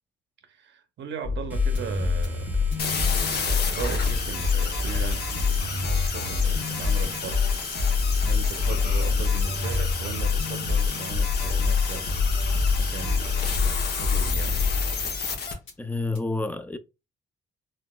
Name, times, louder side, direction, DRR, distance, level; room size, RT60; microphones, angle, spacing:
voice 1, 0.4-7.4 8.2-14.7, right 6 dB, 65° right, 0.7 m, -38 dB
sound 1, 1.2-15.3 15.7-15.8 16.1-16.2, left 4 dB, 75° left, 1.1 m, -26 dB
sound 2, 1.5-9.8, equal, 10° right, 0.7 m, -43 dB
sound 3, 2.8-15.5, left 5 dB, 55° left, 0.9 m, -32 dB
voice 2, 15.8-16.8, left 2 dB, 10° left, 0.3 m, -29 dB
3.9 x 2.4 x 2.3 m
cardioid pair, 90°, 20 cm